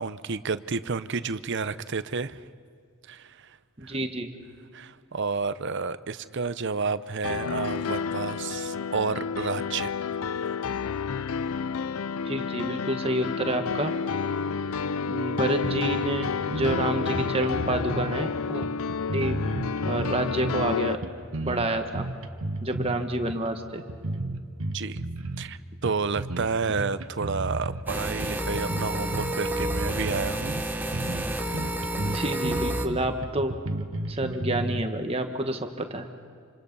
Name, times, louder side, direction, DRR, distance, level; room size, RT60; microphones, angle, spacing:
voice 1, 0.0-2.4 3.1-3.6 3.8-3.9 4.7-9.9 24.7-25.1 25.4-30.6, right 4 dB, 55° right, 14 dB, 0.7 m, -30 dB
voice 2, 3.8-4.3 12.2-13.9 15.1-18.6 19.1-19.4 19.9-21.0 21.4-22.1 22.6-23.8 32.0-33.5 34.1-36.1, right 1 dB, 25° right, 6 dB, 1.5 m, -28 dB
Piano, 7.2-20.9, left 5 dB, 75° left, 0.5 m, -30 dB
sound 1, 15.6-16.0 16.2-16.3 16.5-18.2 18.6-20.7 21.0-23.0 23.3-23.5 23.9-25.5 25.9-26.5 26.8-27.8 28.2-30.3 30.6-30.7 30.9-31.3 31.5-34.8, right 2 dB, 70° right, 1.3 m, -33 dB
sound 2, 27.9-32.9, right 1 dB, 10° right, 1.0 m, -30 dB
27.5 x 26.5 x 5.5 m, 2.3 s
head